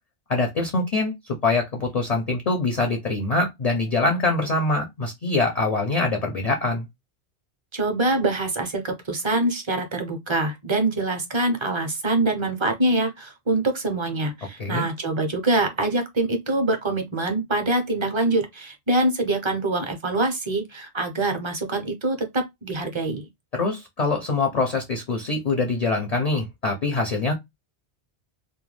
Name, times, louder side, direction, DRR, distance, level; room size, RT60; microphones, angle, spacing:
voice 1, 0.3-1.1 1.4-6.9 14.6-14.9 23.5-27.3, left 3 dB, 50° left, 0.5 m, -24 dB
voice 2, 7.7-23.3, right 2 dB, 35° right, 0.5 m, -24 dB
2.3 x 2.2 x 3.1 m
omnidirectional pair, 1.1 m